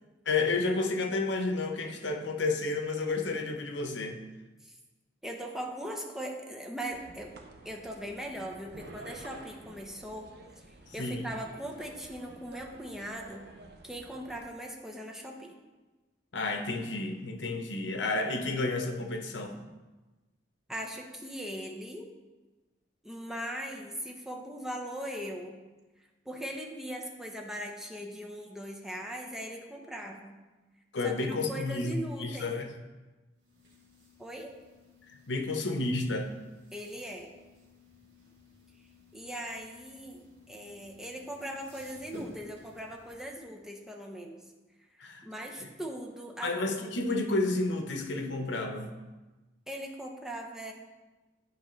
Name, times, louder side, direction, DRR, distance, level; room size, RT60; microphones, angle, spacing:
voice 1, 0.3-4.2 11.0-11.3 16.3-19.6 30.9-31.9 32.2-32.7 35.3-36.3 45.0-45.2 45.6-45.7 46.4-48.9, left 3 dB, 85° left, 4 dB, 0.7 m, -31 dB
voice 2, 5.2-7.3 7.6-10.3 10.6-13.5 13.8-15.5 20.7-22.1 23.0-25.6 26.3-30.4 31.0-32.5 34.2-34.5 36.7-37.3 39.1-44.4 44.9-46.6 49.7-50.7, right 1 dB, 5° right, 0 dB, 0.7 m, -40 dB
sound 1, 6.9-14.4, right 2 dB, 65° right, 0.7 m, -51 dB
sound 2, 33.3-43.2, equal, 80° right, 2.3 m, -53 dB
9.3 x 4.7 x 3.1 m, 1.2 s
head